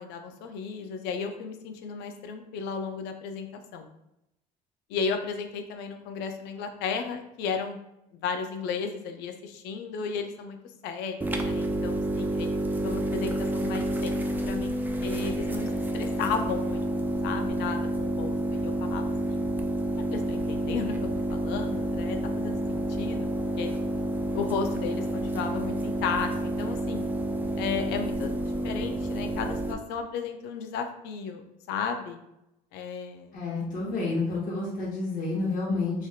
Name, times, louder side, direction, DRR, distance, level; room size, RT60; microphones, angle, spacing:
voice 1, 0.0-3.9 4.9-7.8 8.2-10.6 10.8-12.5 12.8-14.8 15.0-16.8 17.2-19.5 20.1-23.3 23.6-23.7 24.3-27.1 27.6-32.2 32.7-33.4, left 5 dB, 80° left, 6 dB, 0.5 m, -34 dB
sound 1, 11.2-29.7, right 1 dB, 10° right, 0.3 m, -29 dB
voice 2, 33.3-36.1, left 3 dB, 55° left, -3 dB, 0.9 m, -29 dB
3.1 x 2.7 x 2.3 m, 0.85 s
cardioid pair, 100°, 17 cm